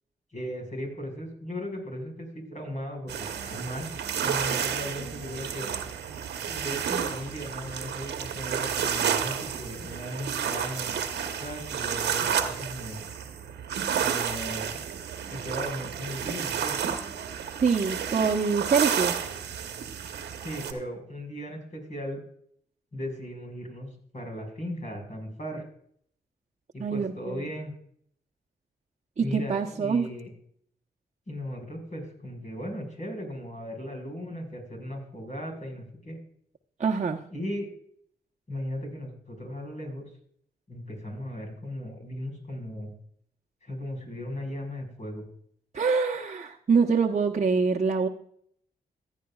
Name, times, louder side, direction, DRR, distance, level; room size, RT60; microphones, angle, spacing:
voice 1, 0.3-5.7 6.4-11.0 11.4-13.0 13.9-14.6 15.3-16.8 20.4-22.2 22.9-25.6 26.7-27.7 29.2-30.3 31.3-36.2 37.3-37.7 38.5-40.1 40.7-42.9 43.6-45.2, equal, 45° left, 3 dB, 5.2 m, -37 dB
sound 1, 3.1-20.7, right 8 dB, 75° right, 1.1 m, -31 dB
voice 2, 17.6-19.1 26.8-27.4 29.2-30.1 36.8-37.2 45.7-48.1, right 5 dB, 40° right, 0 dB, 1.0 m, -25 dB
15.0 x 10.0 x 2.4 m, 0.63 s
supercardioid pair, 45°, 17 cm